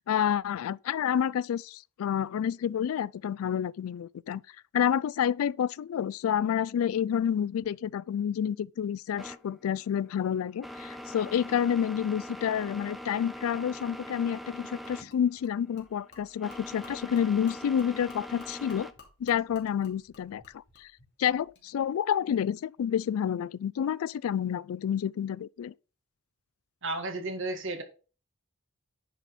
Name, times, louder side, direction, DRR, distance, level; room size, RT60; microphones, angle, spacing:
voice 1, 0.0-4.4 4.7-18.9 19.2-20.9 21.2-25.7, left 8 dB, 75° left, 0.3 m, -29 dB
sound 1, 9.2-18.9, left 1 dB, ahead, 0.6 m, -43 dB
Gurgling / Liquid, 14.8-21.7, left 3 dB, 55° left, 2.8 m, -56 dB
voice 2, 26.8-27.8, right 2 dB, 60° right, 1.8 m, -33 dB
10.0 x 4.2 x 5.2 m
head